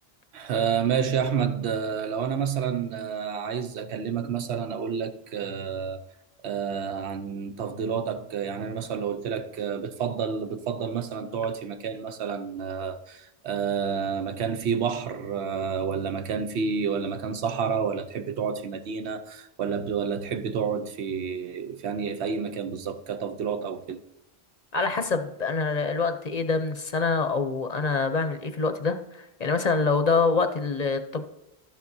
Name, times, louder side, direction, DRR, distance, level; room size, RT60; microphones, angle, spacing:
voice 1, 0.3-6.1 6.4-24.0, right 6 dB, 85° right, 1.0 m, -29 dB
voice 2, 24.7-31.2, left 4 dB, 45° left, 0.6 m, -25 dB
12.0 x 7.2 x 2.7 m
omnidirectional pair, 1.1 m